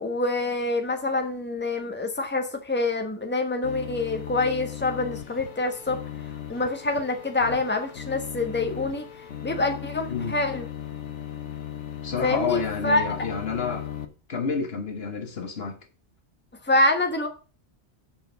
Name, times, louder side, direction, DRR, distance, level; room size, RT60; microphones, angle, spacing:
voice 1, 0.0-6.0 6.5-9.0 9.4-10.7 12.2-13.1 16.6-17.3, left 2 dB, 10° left, 1.2 m, -26 dB
sound 1, 3.6-14.0, left 9 dB, 90° left, 1.3 m, -37 dB
voice 2, 12.0-13.9 14.3-15.8, left 5 dB, 60° left, 1.4 m, -29 dB
7.0 x 5.3 x 6.9 m
omnidirectional pair, 1.2 m